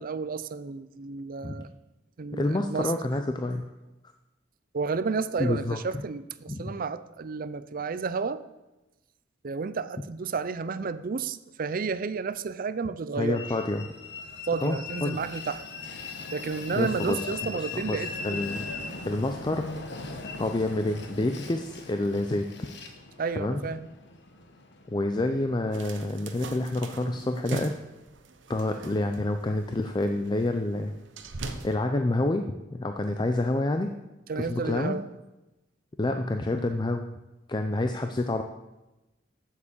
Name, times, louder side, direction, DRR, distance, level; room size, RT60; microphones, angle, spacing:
voice 1, 0.0-1.7 2.2-2.9 4.7-8.4 9.4-13.4 14.5-15.6 16.3-18.5 23.2-23.9 34.3-35.1, right 4 dB, 50° right, 14 dB, 0.5 m, -31 dB
voice 2, 2.3-3.6 5.4-5.8 6.5-6.7 13.2-13.9 14.6-15.2 16.7-17.3 17.5-18.7 19.0-19.7 20.4-22.5 23.4-23.6 24.9-27.8 28.5-30.9 31.6-33.9 34.4-35.0 36.0-37.0 37.5-38.4, left 2 dB, 25° left, 6 dB, 0.5 m, -28 dB
Train, 13.3-25.8, left 3 dB, 65° left, 1.2 m, -40 dB
sound 1, 25.7-31.7, right 2 dB, 90° right, 0.9 m, -40 dB
8.2 x 7.4 x 7.2 m, 1.0 s
head